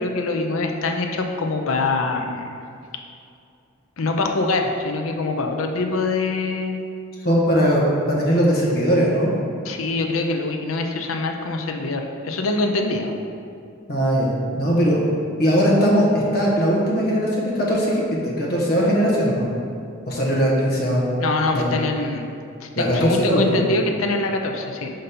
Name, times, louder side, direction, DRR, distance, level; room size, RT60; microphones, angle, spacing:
voice 1, 0.0-2.5 4.0-6.8 9.6-13.1 21.2-22.3 22.6-24.9, left 3 dB, 75° left, 4 dB, 0.6 m, -24 dB
voice 2, 7.2-9.3 13.9-15.0 15.4-16.1 16.3-19.5 20.1-21.0 21.5-21.7 22.8-23.6, equal, 50° left, -4 dB, 1.3 m, -19 dB
5.2 x 5.2 x 4.3 m, 2.5 s
head